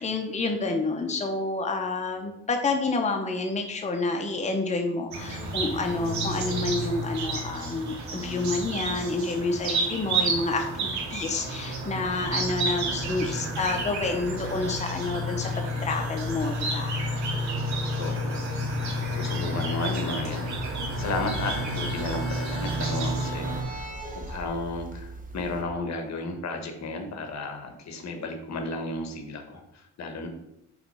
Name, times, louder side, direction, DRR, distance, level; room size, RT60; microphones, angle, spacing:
voice 1, 0.0-17.1, left 3 dB, 25° left, 3 dB, 0.9 m, -29 dB
sound 1, 5.1-23.6, right 1 dB, 70° right, 2.0 m, -30 dB
sound 2, 12.2-22.9, right 2 dB, 50° right, 2.3 m, -45 dB
voice 2, 18.0-23.9 24.1-30.3, left 2 dB, 60° left, 5 dB, 1.3 m, -34 dB
sound 3, 20.6-25.6, right 2 dB, 25° right, 1.2 m, -39 dB
5.7 x 4.2 x 5.5 m, 0.82 s
cardioid pair, 90°, 30 cm